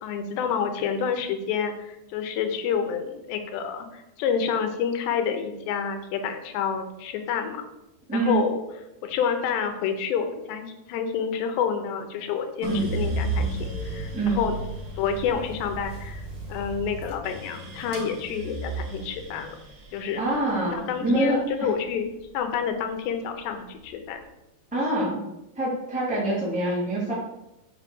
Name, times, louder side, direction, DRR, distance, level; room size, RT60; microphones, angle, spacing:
voice 1, 0.0-7.6 8.1-8.6 9.0-14.5 15.0-16.2 16.5-19.6 19.9-20.3 20.7-22.1 22.3-24.2, left 7 dB, 80° left, 6 dB, 3.1 m, -28 dB
sound 1, 12.6-22.8 23.3-24.0, right 2 dB, 40° right, 2.2 m, -34 dB
voice 2, 14.1-14.4 20.2-21.7 24.7-25.2 25.6-27.1, right 1 dB, ahead, -8 dB, 2.9 m, -25 dB
7.3 x 5.3 x 6.9 m, 0.90 s
omnidirectional pair, 4.9 m